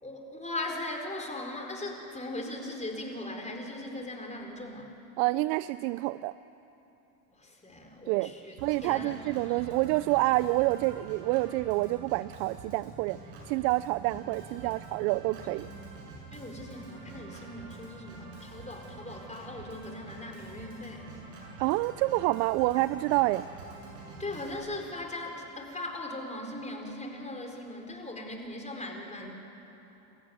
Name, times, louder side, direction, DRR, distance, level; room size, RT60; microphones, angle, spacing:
voice 1, 0.0-4.9 7.3-8.6 8.8-9.8 14.5-15.4 16.3-21.1 24.2-29.3, left 1 dB, 15° left, 2 dB, 4.5 m, -39 dB
voice 2, 5.2-6.3 8.1-8.3 8.6-13.2 13.5-15.7 21.6-23.5, right 20 dB, 70° right, 16 dB, 0.6 m, -28 dB
Organ, 8.6-24.6, right 3 dB, 85° right, 6.9 m, -47 dB
29.0 x 15.0 x 9.6 m, 3.0 s
supercardioid pair, 90°, 49 cm